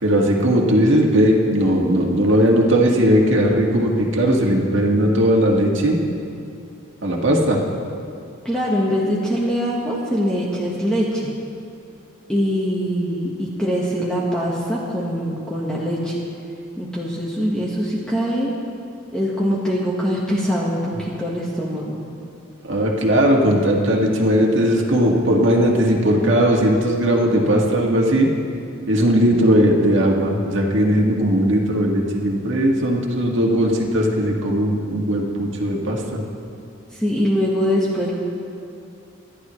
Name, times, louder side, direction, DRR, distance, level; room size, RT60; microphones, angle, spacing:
voice 1, 0.0-6.0 7.0-7.6 22.7-28.3 28.9-36.0, equal, 60° right, -1 dB, 1.9 m, -18 dB
voice 2, 8.4-11.3 12.3-16.2 16.8-18.5 19.1-22.0 36.9-38.1, equal, 5° left, -6 dB, 1.4 m, -23 dB
26.0 x 11.5 x 3.2 m, 2.6 s
head